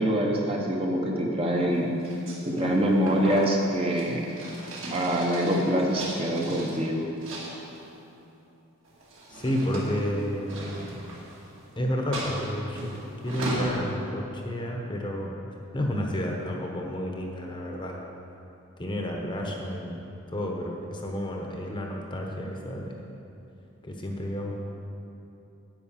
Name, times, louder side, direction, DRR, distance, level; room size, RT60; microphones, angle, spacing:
voice 1, 0.0-1.9 2.5-4.3 4.9-7.1, equal, 25° right, -1 dB, 0.9 m, -25 dB
sound 1, 2.0-6.8 7.2-7.9 8.9-11.6 12.1-13.8, right 1 dB, 60° right, 2.4 m, -37 dB
voice 2, 9.3-10.7 11.8-15.3 15.7-18.0 18.8-23.0 23.8-24.5, equal, 20° left, 0 dB, 1.0 m, -31 dB
10.0 x 8.4 x 5.7 m, 2.9 s
head